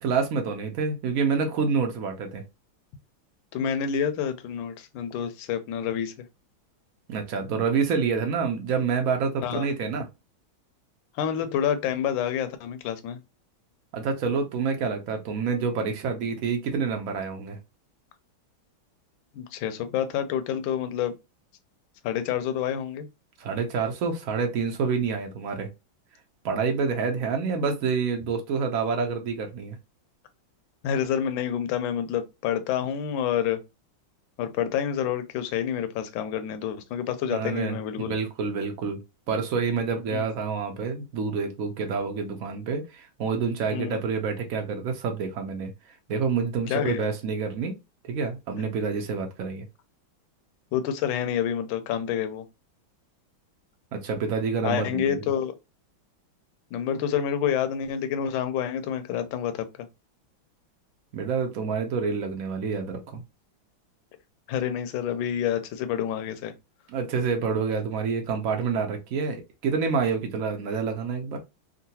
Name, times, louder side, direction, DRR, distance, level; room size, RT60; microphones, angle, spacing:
voice 1, 0.0-2.4 7.1-10.1 13.9-17.6 23.4-25.7 26.4-29.8 37.3-39.0 39.3-45.7 46.1-47.8 48.1-49.6 53.9-55.2 61.1-63.2 66.9-71.4, right 5 dB, 75° right, 0.7 m, -27 dB
voice 2, 3.5-6.3 9.4-9.6 11.2-13.2 19.3-21.1 22.0-23.1 30.8-33.6 34.4-38.1 40.1-40.2 43.7-44.0 46.7-47.0 50.7-52.4 54.6-55.5 56.7-59.7 64.5-66.5, left 9 dB, 75° left, 1.3 m, -28 dB
3.7 x 2.2 x 2.7 m
omnidirectional pair, 2.2 m